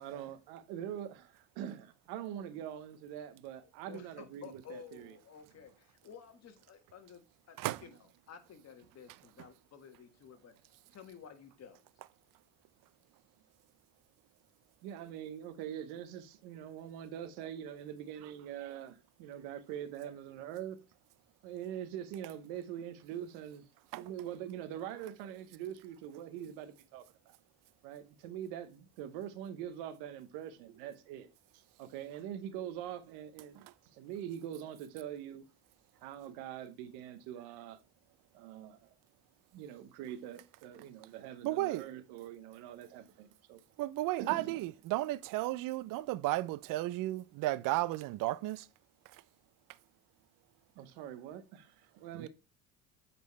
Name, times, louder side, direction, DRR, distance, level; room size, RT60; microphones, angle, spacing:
voice 1, 0.0-5.2 14.8-20.8 21.4-23.6 24.0-27.4 27.8-33.7 33.9-35.5 36.0-37.8 38.3-38.9 39.5-43.6 44.2-44.5 50.8-52.3, right 10 dB, 80° right, 1.0 m, -44 dB
voice 2, 3.9-8.0 8.3-10.5 10.9-11.8, left 7 dB, 40° left, 1.5 m, -53 dB
voice 3, 41.4-41.8 43.8-48.7 49.1-49.2 52.1-52.3, right 17 dB, 60° right, 0.5 m, -34 dB
8.3 x 4.5 x 3.1 m
supercardioid pair, 85°, 39 cm